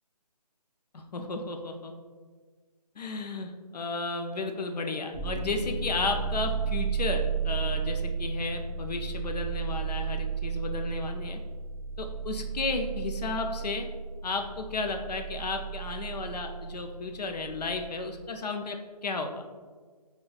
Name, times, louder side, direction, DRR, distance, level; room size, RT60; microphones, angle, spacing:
voice 1, 0.9-1.9 3.0-11.4 12.0-13.9 14.2-18.8 19.0-19.5, left 3 dB, 75° left, 4 dB, 0.5 m, -33 dB
sound 1, 5.1-17.9, right 6 dB, 15° right, 1.3 m, -33 dB
5.2 x 2.2 x 2.3 m, 1.5 s
hypercardioid pair, 170°, 21 cm